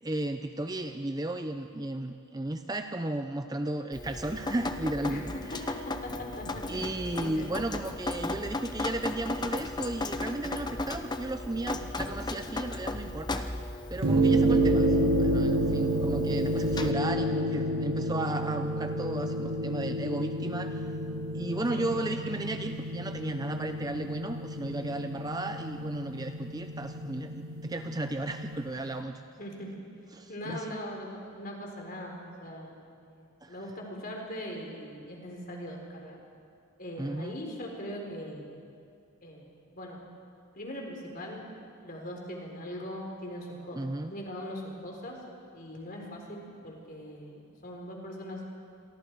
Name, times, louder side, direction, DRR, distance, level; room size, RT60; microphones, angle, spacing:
voice 1, 0.0-5.2 5.5-5.6 6.7-13.6 13.9-20.9 21.3-29.1 30.1-30.8 33.4-33.6 37.0-37.4 43.8-44.1, right 1 dB, 15° right, 7 dB, 0.6 m, -34 dB
Drip, 3.9-16.9, left 2 dB, 20° left, 0.7 m, -35 dB
voice 2, 5.0-6.9 7.2-7.7 21.7-21.9 29.4-29.8 30.3-36.2 36.8-38.5 39.2-40.0 40.5-41.4 41.8-43.8 44.1-45.2 45.5-48.4, equal, 40° left, 0 dB, 4.1 m, -41 dB
sound 1, 14.0-28.6, right 1 dB, 60° right, 1.8 m, -29 dB
28.0 x 23.0 x 4.7 m, 2.4 s
head